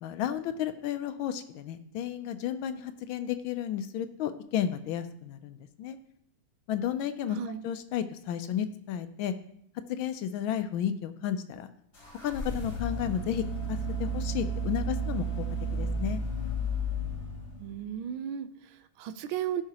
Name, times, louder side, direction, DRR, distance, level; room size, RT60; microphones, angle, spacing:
voice 1, 0.0-6.0 6.7-7.4 7.6-9.3 9.9-11.7 12.2-15.5 15.7-16.2, left 10 dB, 75° left, 10 dB, 1.3 m, -33 dB
voice 2, 7.3-7.7 17.6-19.6, right 9 dB, 75° right, 11 dB, 1.3 m, -35 dB
sound 1, 11.9-17.8, right 1 dB, 45° left, 3.8 m, -33 dB
16.0 x 5.7 x 2.9 m, 0.72 s
omnidirectional pair, 2.4 m